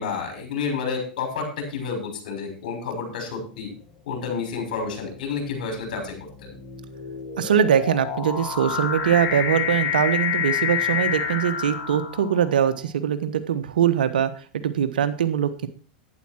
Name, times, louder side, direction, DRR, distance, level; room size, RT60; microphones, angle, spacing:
voice 1, 0.0-3.7 4.1-6.5, left 5 dB, 70° left, 4 dB, 6.2 m, -30 dB
sound 1, 3.2-3.6 4.4-12.6, left 8 dB, 45° left, 5.3 m, -29 dB
voice 2, 7.4-14.3 14.6-15.7, right 9 dB, 80° right, 11 dB, 1.4 m, -22 dB
11.5 x 10.0 x 4.6 m, 0.39 s
hypercardioid pair, 100°, 5 cm